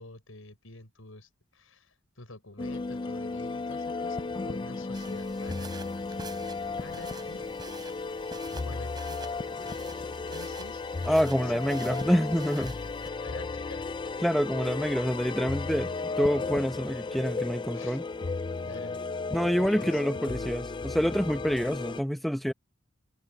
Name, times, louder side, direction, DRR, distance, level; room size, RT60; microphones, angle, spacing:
voice 1, 0.0-5.7 6.1-6.3 6.8-7.8 8.6-9.4 10.3-11.0 11.4-12.1 12.4-12.7 13.2-13.8 17.7-18.0 18.6-19.0 19.4-20.0, left 2 dB, 80° left, 6.2 m, -47 dB
sound 1, 2.6-22.0, left 3 dB, 25° left, 0.4 m, -34 dB
sound 2, 4.9-13.1, right 3 dB, 20° right, 5.8 m, -48 dB
voice 2, 11.1-12.7 14.2-18.0 19.3-22.5, equal, ahead, 0.7 m, -27 dB
head